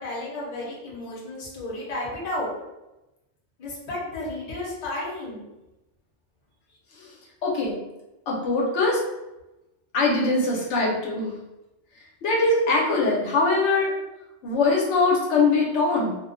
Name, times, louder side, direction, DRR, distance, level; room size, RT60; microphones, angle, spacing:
voice 1, 0.0-2.5 3.6-5.5, left 1 dB, 40° left, -5 dB, 0.7 m, -32 dB
voice 2, 7.4-7.8 8.3-9.0 9.9-11.3 12.2-13.9 14.4-16.2, left 3 dB, 80° left, -2 dB, 0.9 m, -22 dB
2.3 x 2.1 x 2.4 m, 0.99 s
omnidirectional pair, 1.2 m